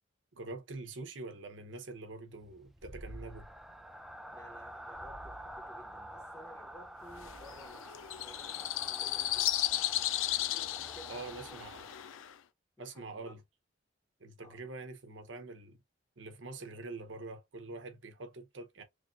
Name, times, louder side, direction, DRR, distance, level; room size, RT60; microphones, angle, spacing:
voice 1, 0.3-3.5 11.1-11.8 12.8-13.4 14.2-15.8 16.2-18.8, right 3 dB, 70° right, 0.8 m, -45 dB
sound 1, 2.4-12.4, right 1 dB, ahead, 0.3 m, -48 dB
voice 2, 4.3-10.1 10.7-11.8 12.8-13.3 14.4-14.6, left 1 dB, 15° left, 1.1 m, -56 dB
sound 2, 7.2-12.3, left 14 dB, 90° left, 0.4 m, -35 dB
3.2 x 2.5 x 3.7 m
head